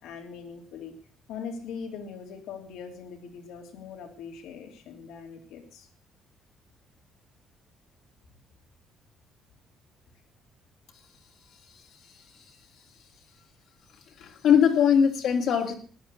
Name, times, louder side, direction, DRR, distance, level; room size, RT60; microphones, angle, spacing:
voice 1, 0.0-0.9 1.3-5.9, left 6 dB, 85° left, 4 dB, 3.3 m, -41 dB
voice 2, 12.1-12.5 14.1-15.7, left 8 dB, 70° left, 0 dB, 2.6 m, -22 dB
14.5 x 10.0 x 6.7 m, 0.43 s
cardioid pair, 120°, 0 cm